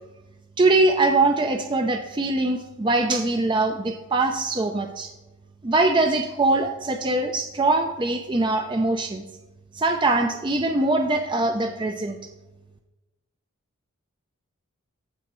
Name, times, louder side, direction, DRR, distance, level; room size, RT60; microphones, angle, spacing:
voice 1, 0.6-5.1 5.6-9.2 9.7-12.2, right 2 dB, 20° right, 4 dB, 0.4 m, -22 dB
15.0 x 5.0 x 3.1 m, 1.1 s
head